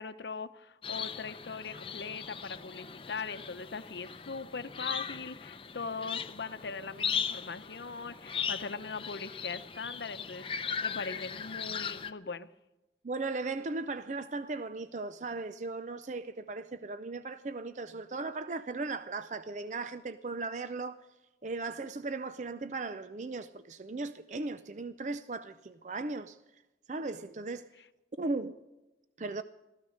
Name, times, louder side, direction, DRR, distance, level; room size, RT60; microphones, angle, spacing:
voice 1, 0.0-12.5, left 4 dB, 75° left, 0.8 m, -40 dB
sound 1, 0.8-12.1, left 7 dB, 30° left, 0.6 m, -38 dB
voice 2, 13.0-21.0 21.4-26.4 26.9-27.7 28.2-28.6 29.2-29.4, right 3 dB, 40° right, 0.5 m, -37 dB
16.5 x 14.0 x 6.4 m
head